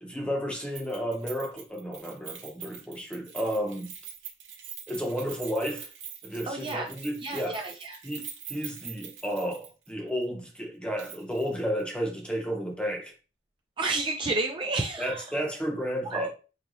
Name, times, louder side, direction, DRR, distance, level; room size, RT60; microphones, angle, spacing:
voice 1, 0.0-3.9 4.9-5.9 6.2-7.6 8.0-13.1 15.0-16.3, equal, 5° left, 0.7 m, -32 dB
Keys jangling, 0.7-9.9 10.2-10.3 11.0-11.5 11.8-11.9, right 8 dB, 65° right, 0.9 m, -44 dB
voice 2, 6.5-6.9 7.2-8.0 13.8-15.3 16.1-16.3, right 2 dB, 25° right, 0.4 m, -30 dB
3.8 x 2.9 x 3.0 m
head